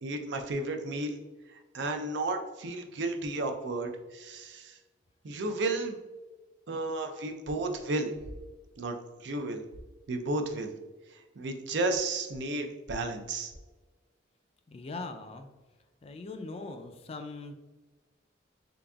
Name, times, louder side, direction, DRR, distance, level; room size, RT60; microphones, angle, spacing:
voice 1, 0.0-1.2 1.5-4.8 5.2-6.0 6.7-8.1 8.8-9.0 9.2-9.6 10.1-10.7 11.1-13.5, right 2 dB, 65° right, 5 dB, 0.5 m, -33 dB
voice 2, 14.7-15.5 16.0-17.5, left 3 dB, 30° left, 6 dB, 0.3 m, -40 dB
3.8 x 3.5 x 2.3 m, 1.2 s
head